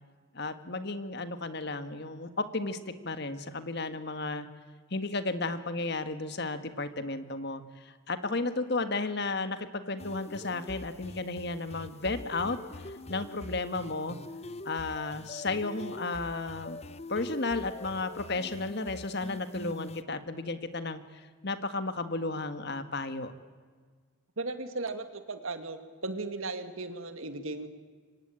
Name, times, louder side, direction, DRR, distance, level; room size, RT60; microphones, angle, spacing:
voice 1, 0.3-2.8 3.0-4.5 4.9-12.6 12.8-14.2 14.6-16.8 17.1-23.3, left 3 dB, 55° left, 10 dB, 1.7 m, -33 dB
sound 1, 10.0-20.0, left 2 dB, 30° left, 0.8 m, -44 dB
voice 2, 24.4-27.7, right 3 dB, 80° right, 8 dB, 2.4 m, -36 dB
27.5 x 24.5 x 8.9 m, 1.6 s
head